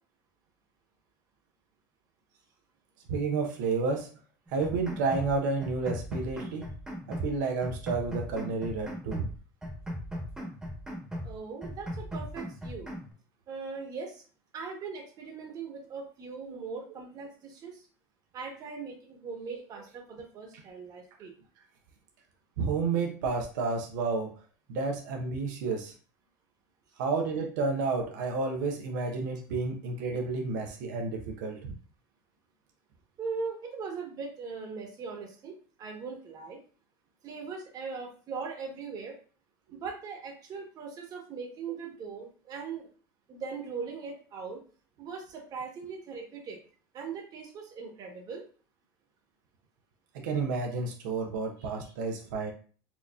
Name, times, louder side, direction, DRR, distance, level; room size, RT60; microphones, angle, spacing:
voice 1, 3.1-4.1 4.5-6.7 7.1-9.3 22.6-24.3 24.7-25.9 27.0-31.7 50.1-52.5, right 4 dB, 85° right, 2 dB, 0.6 m, -31 dB
sound 1, 4.5-5.3 5.6-7.3 7.6-9.3 9.6-11.3 11.6-13.1, equal, 5° right, 1.1 m, -38 dB
voice 2, 11.2-12.9 13.5-14.2 14.5-17.9 18.3-21.3 33.2-36.6 37.2-39.1 39.7-42.9 43.3-44.6 45.0-46.6 46.9-48.4 51.6-51.9, right 5 dB, 40° right, 1 dB, 1.2 m, -40 dB
4.3 x 2.6 x 2.4 m, 0.40 s
supercardioid pair, 125°, 10 cm